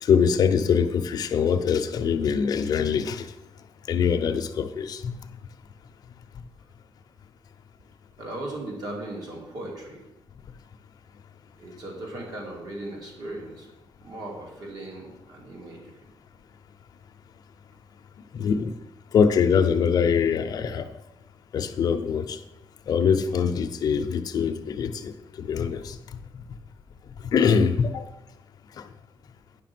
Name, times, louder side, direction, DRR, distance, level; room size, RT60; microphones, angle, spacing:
voice 1, 0.0-3.3 3.9-5.1 18.3-18.7 19.1-20.9 21.5-22.4 22.9-26.0 27.3-28.1 28.8-28.9, left 6 dB, 55° left, 7 dB, 0.7 m, -23 dB
voice 2, 8.2-10.1 11.5-13.7 14.0-16.0, right 1 dB, 55° right, -1 dB, 2.6 m, -37 dB
9.7 x 5.9 x 6.1 m, 0.96 s
wide cardioid pair, 170°, 8 cm